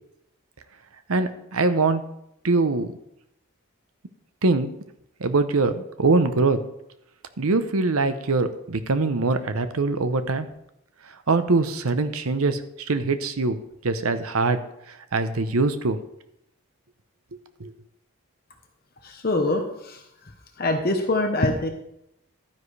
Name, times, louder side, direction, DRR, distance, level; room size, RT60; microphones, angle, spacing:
voice 1, 1.1-2.0 2.4-2.9 4.4-4.7 5.2-6.6 7.4-10.5 11.3-12.6 12.9-13.6 13.8-14.6 15.1-16.0 17.6-17.7, right 3 dB, 80° right, 10 dB, 0.8 m, -22 dB
voice 2, 19.0-20.0 20.6-21.7, left 2 dB, 45° left, 4 dB, 1.0 m, -24 dB
12.0 x 9.7 x 3.3 m, 0.81 s
head